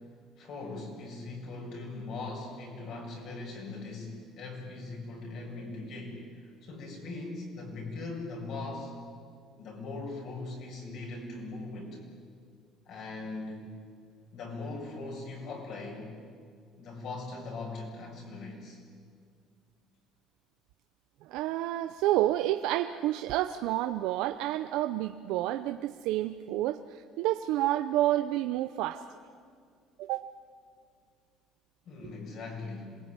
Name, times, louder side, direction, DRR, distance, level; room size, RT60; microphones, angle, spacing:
voice 1, 0.4-8.9 9.6-12.0 12.9-13.7 14.3-16.1 16.8-18.8 31.9-33.0, left 3 dB, 50° left, 0 dB, 7.2 m, -40 dB
voice 2, 21.3-29.0 30.0-30.3, right 14 dB, 80° right, 8 dB, 0.7 m, -29 dB
27.0 x 20.5 x 9.8 m, 2.1 s
cardioid pair, 160°, 0 cm